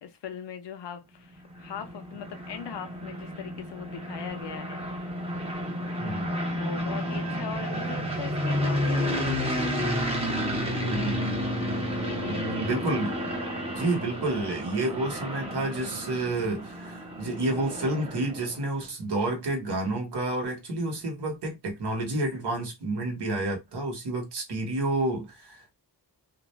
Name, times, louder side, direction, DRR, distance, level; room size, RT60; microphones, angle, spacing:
voice 1, 0.0-4.8 6.6-10.0 12.0-12.9, left 8 dB, 90° left, 0.6 m, -40 dB
sound 1, 1.4-18.6, equal, 15° right, 0.6 m, -31 dB
voice 2, 6.0-6.3 10.8-11.2 12.2-13.2 13.8-25.8, right 2 dB, 75° right, 1.0 m, -30 dB
2.5 x 2.1 x 3.0 m
wide cardioid pair, 155°, 41 cm